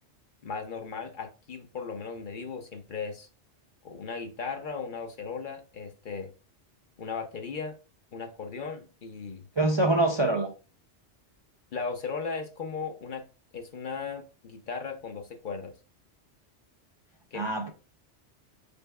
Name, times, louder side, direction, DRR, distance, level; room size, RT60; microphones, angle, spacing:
voice 1, 0.4-3.3 3.8-6.3 7.0-7.7 8.1-9.5 9.8-9.9 11.7-13.2 13.5-15.7 17.3-17.5, left 5 dB, 55° left, 0.7 m, -37 dB
voice 2, 9.6-10.5 17.3-17.7, right 2 dB, 40° right, 0.4 m, -24 dB
5.2 x 4.3 x 2.2 m
omnidirectional pair, 1.2 m